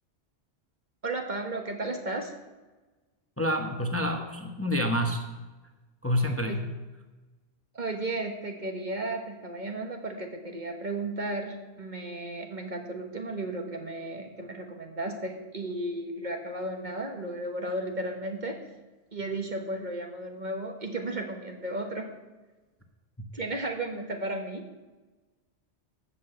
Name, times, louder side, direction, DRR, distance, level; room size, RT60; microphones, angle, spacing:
voice 1, 1.0-2.3 6.4-6.6 7.7-18.6 19.1-22.1 23.3-24.7, right 2 dB, 45° right, 3 dB, 1.4 m, -34 dB
voice 2, 3.4-5.2 6.0-6.7, equal, 15° left, 4 dB, 1.0 m, -28 dB
13.5 x 5.8 x 7.9 m, 1.2 s
omnidirectional pair, 1.2 m